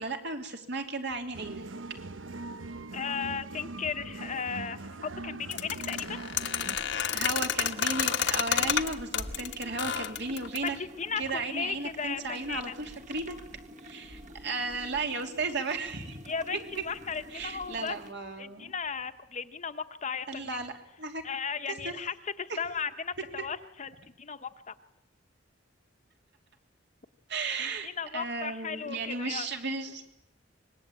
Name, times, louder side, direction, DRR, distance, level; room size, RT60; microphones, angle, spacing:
voice 1, 0.0-1.6 7.1-10.8 11.2-13.4 13.8-16.2 17.3-18.7 20.3-21.2 21.7-21.9 22.5-22.6 27.3-30.0, right 3 dB, 65° right, 4 dB, 3.1 m, -35 dB
sound 1, 1.3-6.8, right 3 dB, 90° right, 1.1 m, -41 dB
voice 2, 2.9-6.2 10.6-12.7 16.3-18.0 18.4-20.6 21.2-24.7 27.6-29.5, left 6 dB, 40° left, 10 dB, 1.1 m, -36 dB
sound 2, 5.5-10.8, left 9 dB, 65° left, 1.3 m, -30 dB
sound 3, 6.6-18.1, equal, 40° right, 1.7 m, -48 dB
25.0 x 20.5 x 8.8 m, 0.82 s
head